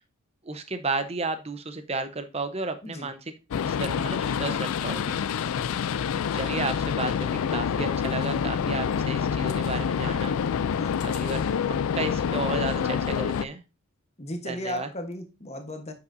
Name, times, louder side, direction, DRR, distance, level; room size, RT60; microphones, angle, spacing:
voice 1, 0.4-3.2 3.6-5.2 6.3-10.4 11.0-11.4 11.7-13.6 14.5-14.9, right 3 dB, 30° right, 10 dB, 0.8 m, -33 dB
sound 1, 3.5-13.5, left 7 dB, 70° left, 0.4 m, -27 dB
voice 2, 14.2-15.9, left 1 dB, 30° left, 6 dB, 1.1 m, -36 dB
8.9 x 5.8 x 2.6 m, 0.28 s
head